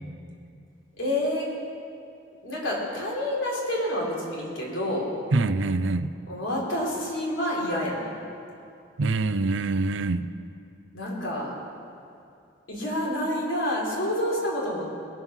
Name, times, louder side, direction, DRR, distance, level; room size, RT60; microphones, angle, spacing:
voice 1, 1.0-1.5 2.4-5.1 6.3-8.1 10.9-11.5 12.7-14.9, left 1 dB, 85° left, -4 dB, 3.7 m, -28 dB
voice 2, 5.3-6.1 9.0-10.2, right 3 dB, 75° right, 13 dB, 0.5 m, -24 dB
21.0 x 7.5 x 6.4 m, 2.5 s
head